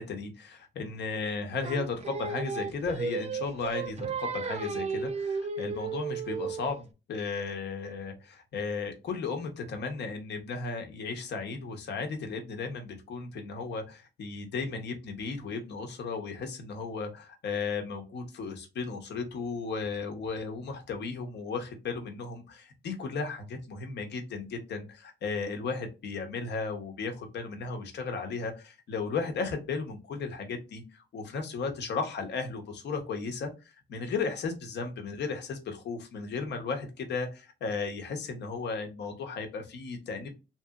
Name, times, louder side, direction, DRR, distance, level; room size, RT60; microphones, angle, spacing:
voice 1, 0.0-40.3, left 4 dB, 75° left, 5 dB, 0.9 m, -35 dB
Singing, 1.6-6.8, right 5 dB, 35° right, 0.5 m, -34 dB
3.0 x 2.8 x 2.3 m, 0.28 s
cardioid pair, 75°, 18 cm